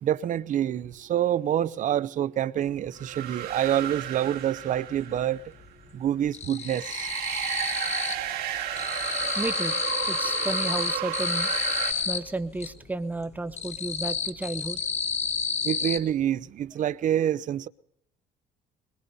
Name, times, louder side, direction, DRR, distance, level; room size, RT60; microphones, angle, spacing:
voice 1, 0.0-5.4 5.9-7.1 15.6-17.7, right 11 dB, 50° right, 0.6 m, -27 dB
sound 1, 2.7-2.8 3.1-4.4 4.7-5.4 5.6-8.3 8.6-12.7 13.2-16.0, left 6 dB, 40° left, 1.1 m, -30 dB
sound 2, 2.9-5.5 6.6-11.9, right 11 dB, 65° right, 3.0 m, -33 dB
voice 2, 9.4-9.8 10.1-11.5 12.1-14.8, right 2 dB, 10° right, 0.6 m, -32 dB
22.5 x 21.5 x 2.7 m
cardioid pair, 110°, 17 cm